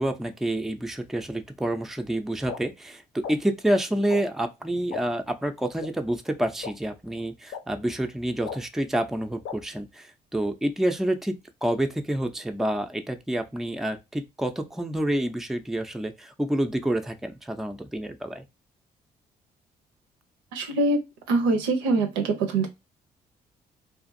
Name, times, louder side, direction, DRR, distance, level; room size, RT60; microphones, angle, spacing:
voice 1, 0.0-18.4, right 1 dB, ahead, 0.4 m, -28 dB
sound 1, 2.5-2.6 3.2-3.3 4.1-4.2 4.9-5.0 5.8-5.9 6.6-6.7 7.5-7.6 8.4-8.6 9.4-9.5, left 6 dB, 65° left, 0.7 m, -34 dB
voice 2, 20.5-21.0 21.3-22.7, right 3 dB, 80° right, 0.6 m, -23 dB
2.5 x 2.4 x 2.5 m
hypercardioid pair, 45°, 21 cm